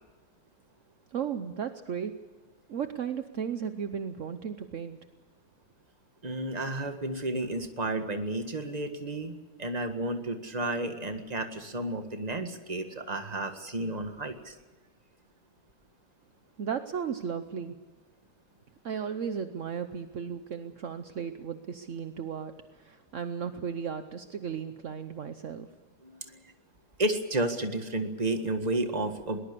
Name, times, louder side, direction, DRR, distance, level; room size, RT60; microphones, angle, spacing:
voice 1, 1.1-2.1 2.7-5.0 16.6-17.7 18.8-25.7, right 7 dB, 60° right, 9 dB, 0.8 m, -35 dB
voice 2, 6.2-9.3 9.6-14.6 26.0-26.5 27.0-29.4, right 2 dB, 20° right, 7 dB, 1.6 m, -32 dB
22.0 x 19.5 x 6.9 m, 1.3 s
omnidirectional pair, 2.4 m